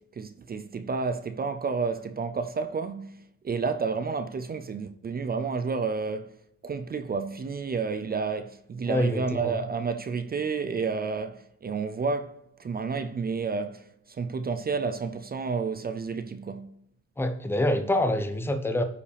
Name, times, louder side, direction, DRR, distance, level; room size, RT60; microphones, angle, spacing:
voice 1, 0.2-6.3 6.6-16.7, right 5 dB, 30° right, 0.5 m, -30 dB
voice 2, 8.9-9.5 17.2-18.8, left 1 dB, 10° left, 0.9 m, -26 dB
13.0 x 5.0 x 3.4 m
cardioid pair, 90°, 30 cm